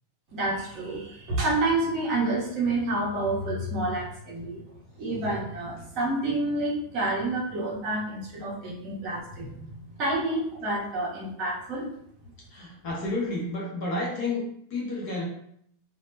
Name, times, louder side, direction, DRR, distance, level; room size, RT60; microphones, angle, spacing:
voice 1, 0.3-4.6 5.0-9.7 10.0-11.9, right 2 dB, 30° right, -4 dB, 0.7 m, -28 dB
voice 2, 12.5-15.2, left 2 dB, 40° left, -4 dB, 0.6 m, -31 dB
2.1 x 2.0 x 3.2 m, 0.69 s
supercardioid pair, 175°, 0 cm